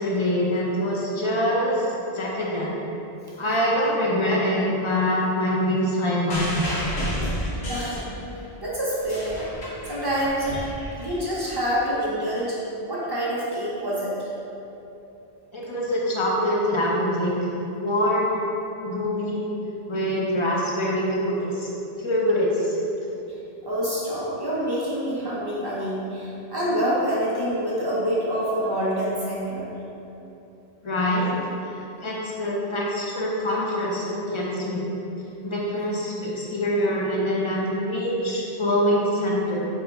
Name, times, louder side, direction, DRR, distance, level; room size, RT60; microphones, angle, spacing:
voice 1, 0.0-1.9 2.1-2.7 3.4-6.5 15.5-17.3 17.8-18.4 18.8-19.4 19.9-21.7 22.0-22.8 30.8-31.3 32.0-34.8 35.4-39.7, equal, 50° left, -4 dB, 0.3 m, -24 dB
sound 1, 6.3-8.5 8.9-11.5 12.4-12.5, equal, 75° left, 1.1 m, -31 dB
voice 2, 7.7-8.1 8.6-9.4 9.9-10.6 11.0-12.6 12.9-14.3 23.6-29.7, equal, 35° right, -7 dB, 0.4 m, -26 dB
3.5 x 2.2 x 4.0 m, 2.9 s
omnidirectional pair, 1.1 m